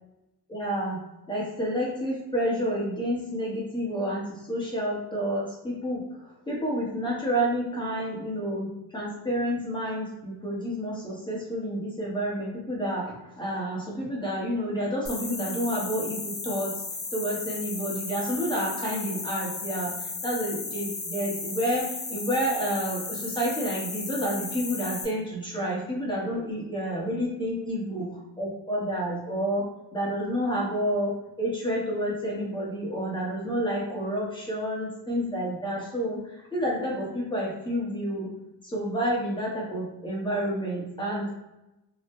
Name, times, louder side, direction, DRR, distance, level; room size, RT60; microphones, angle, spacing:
voice 1, 0.5-1.0 1.3-6.0 6.5-16.7 17.1-29.7 29.9-36.2 36.5-38.3 38.6-41.3, equal, 10° left, -5 dB, 0.8 m, -29 dB
sound 1, 15.1-25.1, left 3 dB, 25° left, 0.4 m, -35 dB
2.7 x 2.0 x 3.4 m, 0.94 s
wide cardioid pair, 170°, 42 cm